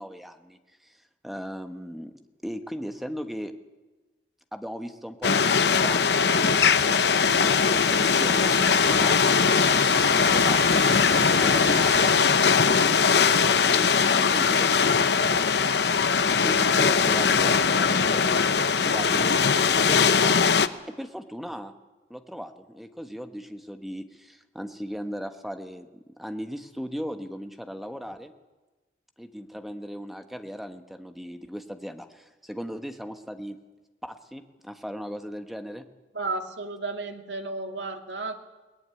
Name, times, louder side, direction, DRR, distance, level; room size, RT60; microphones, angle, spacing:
voice 1, 0.0-2.1 2.4-3.5 4.5-8.6 8.8-12.1 12.7-15.5 16.3-20.4 20.9-21.7 22.1-28.3 29.2-33.6 34.0-35.8, equal, ahead, 7 dB, 1.3 m, -38 dB
sound 1, 5.2-20.7, left 5 dB, 70° left, 0.9 m, -21 dB
Wind, 7.2-12.2, right 6 dB, 40° right, 1.9 m, -38 dB
voice 2, 36.1-38.3, right 3 dB, 75° right, 5 dB, 2.3 m, -33 dB
22.0 x 19.0 x 9.7 m, 1.2 s
head